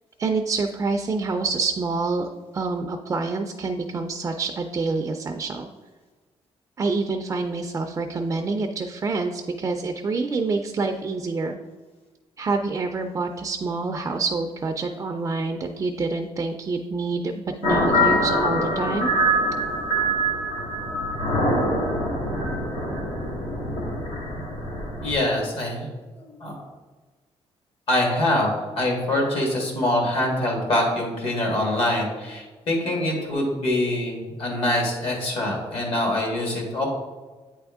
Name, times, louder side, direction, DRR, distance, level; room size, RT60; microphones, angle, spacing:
voice 1, 0.2-2.3 2.5-5.7 6.8-11.6 12.4-19.1, right 3 dB, 25° right, 4 dB, 0.3 m, -27 dB
sound 1, 17.6-25.2, equal, 85° left, 1.4 m, -24 dB
voice 2, 25.0-25.8 26.2-26.6 27.9-28.5 28.8-36.8, left 1 dB, 60° left, 0 dB, 1.7 m, -24 dB
8.7 x 3.5 x 3.5 m, 1.3 s
cardioid pair, 145°, 11 cm